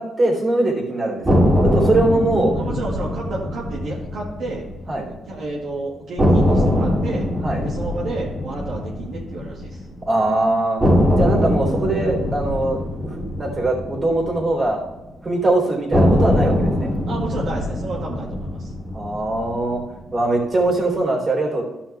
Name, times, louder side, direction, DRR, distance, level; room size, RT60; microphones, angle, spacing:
voice 1, 0.0-2.5 4.9-5.0 7.4-7.6 10.0-10.8 11.1-13.1 13.4-14.8 15.2-16.9 18.9-19.8 20.1-21.6, right 2 dB, 35° right, -1 dB, 3.6 m, -21 dB
sound 1, 1.3-5.3 5.6-5.7 6.2-10.3 10.8-15.2 15.9-20.3, left 1 dB, 15° right, 2.5 m, -22 dB
voice 2, 2.6-4.7 5.1-7.3 7.6-9.9 17.1-18.7, right 2 dB, 65° right, -5 dB, 2.2 m, -31 dB
13.5 x 5.7 x 3.5 m, 1.0 s
cardioid pair, 90°, 0 cm